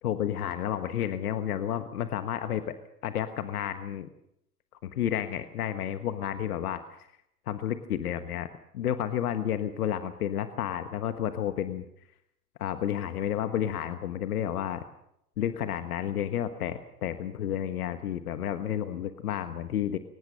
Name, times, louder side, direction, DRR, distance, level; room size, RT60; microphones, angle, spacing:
voice 1, 0.0-2.7 3.0-4.1 4.8-7.1 7.5-8.5 8.7-11.9 12.6-14.8 15.4-20.0, left 10 dB, 75° left, 9 dB, 1.4 m, -31 dB
23.5 x 19.0 x 6.6 m, 0.78 s
hypercardioid pair, 85°, 46 cm